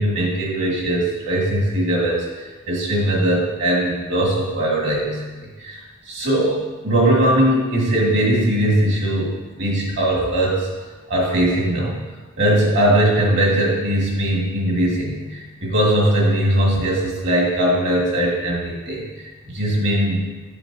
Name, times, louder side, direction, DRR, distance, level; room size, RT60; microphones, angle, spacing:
voice 1, 0.0-5.3 5.6-10.7 11.1-12.0 12.4-20.3, right 1 dB, 55° right, -3 dB, 1.8 m, -20 dB
7.6 x 7.0 x 2.7 m, 1.3 s
head